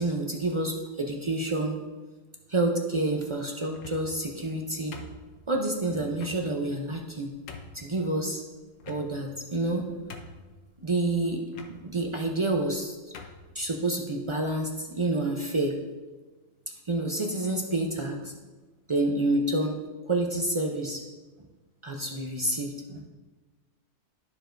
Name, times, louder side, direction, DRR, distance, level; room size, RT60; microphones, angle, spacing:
voice 1, 0.0-1.8 2.5-4.9 5.5-7.3 7.7-8.4 8.9-9.9 10.8-13.0 13.5-15.8 16.9-18.3 18.9-19.8 20.1-21.0 21.8-23.0, right 2 dB, 45° right, 1 dB, 0.4 m, -28 dB
sound 1, 3.7-4.2 4.9-5.6 6.2-6.4 7.0-7.1 7.5-7.8 8.8-9.4 9.7-9.8 10.1-10.6 11.5-11.7 12.6-12.7 13.1-13.4, left 4 dB, 80° left, 1.1 m, -44 dB
12.5 x 4.7 x 2.6 m, 1.3 s
omnidirectional pair, 1.4 m